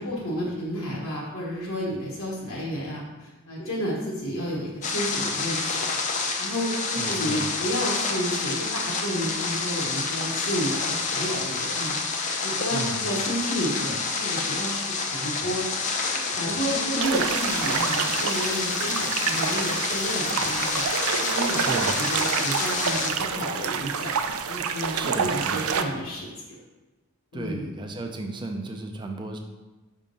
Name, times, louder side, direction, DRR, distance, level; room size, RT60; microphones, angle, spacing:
voice 1, 0.0-5.8 6.4-14.9 15.1-15.6 16.1-20.8 21.2-21.7 22.0-24.1 24.5-26.3 27.3-27.7, equal, 70° left, -4 dB, 1.2 m, -31 dB
sound 1, 4.8-23.1, left 4 dB, 35° left, 0.6 m, -28 dB
voice 2, 6.9-7.5 12.7-13.1 21.6-22.0 24.9-25.7 27.3-29.4, right 2 dB, 20° right, 4 dB, 0.5 m, -34 dB
sound 2, 17.0-25.8, right 6 dB, 85° right, 0.4 m, -28 dB
5.6 x 3.7 x 5.3 m, 1.2 s
head